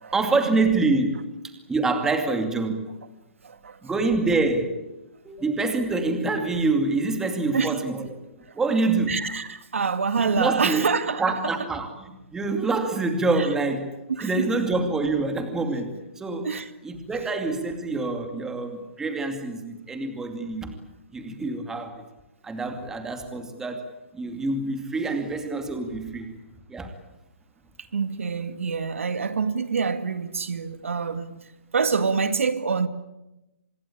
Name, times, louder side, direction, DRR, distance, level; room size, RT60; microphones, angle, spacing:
voice 1, 0.1-1.3 1.7-2.9 3.8-4.8 5.2-8.2 8.5-9.2 10.2-10.9 11.2-16.5 16.8-20.8 21.1-22.0 22.4-23.9 24.1-26.3 26.7-26.9, right 3 dB, 5° right, 2.5 m, -26 dB
voice 2, 3.4-3.8 7.5-7.8 9.1-11.5 13.4-13.5 14.2-14.6 16.4-16.7 27.9-31.4 31.7-32.9, right 5 dB, 90° right, 2.0 m, -26 dB
25.5 x 21.5 x 8.7 m
hypercardioid pair, 155°, 7 cm